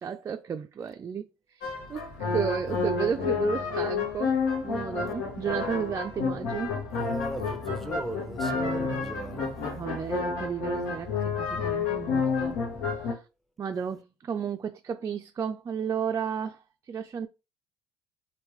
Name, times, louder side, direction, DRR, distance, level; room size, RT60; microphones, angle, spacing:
voice 1, 0.0-4.4 4.6-6.7 8.5-9.4 9.8-12.6 13.0-13.2 13.6-16.6 16.9-17.3, right 7 dB, 30° right, 0.3 m, -33 dB
sound 1, 1.6-13.1, left 5 dB, 85° left, 1.2 m, -30 dB
voice 2, 6.9-9.5, right 1 dB, ahead, 0.7 m, -37 dB
3.3 x 2.6 x 3.1 m
supercardioid pair, 75°, 10 cm